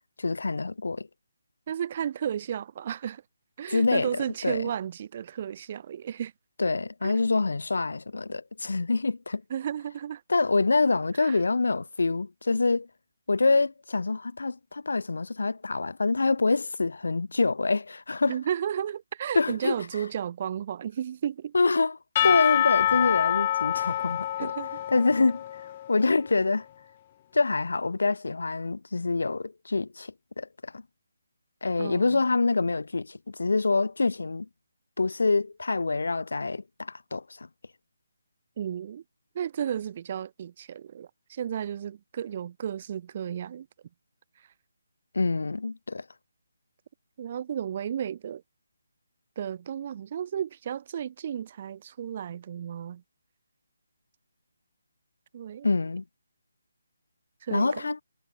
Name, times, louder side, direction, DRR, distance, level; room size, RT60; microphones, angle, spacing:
voice 1, 0.2-1.1 3.7-4.1 4.4-4.6 6.6-9.4 10.3-12.9 13.3-18.4 19.3-19.7 21.5-24.5 24.9-25.4 25.9-26.7 27.3-30.8 31.6-34.5 35.0-37.5 45.1-46.0 55.6-56.0 57.5-58.0, left 3 dB, 80° left, 1.6 m, -26 dB
voice 2, 1.7-3.2 3.6-6.3 7.0-7.1 9.5-10.2 11.2-11.4 18.3-21.5 24.4-24.8 31.8-32.2 38.6-39.0 39.3-43.7 47.2-48.4 49.4-53.0 55.3-55.7 57.4-57.9, right 9 dB, 25° right, 7.0 m, -33 dB
Percussion / Church bell, 22.2-26.0, left 12 dB, 20° left, 0.4 m, -26 dB
hypercardioid pair, 175°, 0 cm